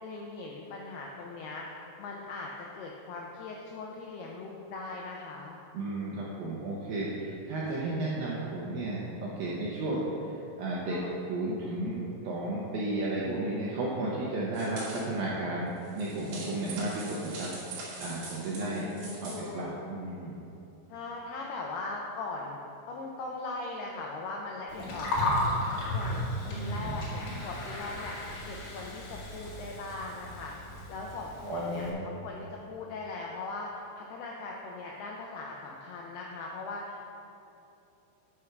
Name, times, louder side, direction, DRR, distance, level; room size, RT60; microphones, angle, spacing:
voice 1, 0.0-5.6 5.9-6.2 10.9-11.1 18.6-19.7 20.9-22.6 22.9-37.1, left 3 dB, 90° left, -1 dB, 2.2 m, -40 dB
voice 2, 5.7-11.0 11.3-17.5 18.0-18.8 19.2-20.4 26.4-27.0 31.5-32.2, right 2 dB, 80° right, -5 dB, 2.1 m, -33 dB
sound 1, 14.5-15.1 15.8-19.5, right 3 dB, 60° right, 3.9 m, -43 dB
Gurgling, 24.7-31.9, left 1 dB, 70° left, 4.1 m, -34 dB
9.0 x 6.5 x 5.9 m, 2.8 s
omnidirectional pair, 5.5 m